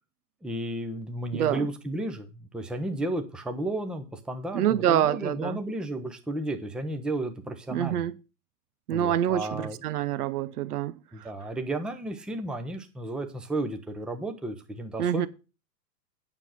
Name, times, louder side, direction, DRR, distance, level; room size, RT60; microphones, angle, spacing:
voice 1, 0.4-8.0 8.9-9.8 11.1-15.3, right 1 dB, ahead, 0.7 m, -33 dB
voice 2, 1.3-1.7 4.5-5.6 7.7-8.2 8.9-11.0 15.0-15.3, right 10 dB, 65° right, 0.8 m, -26 dB
9.0 x 6.5 x 5.7 m
hypercardioid pair, 120°, 49 cm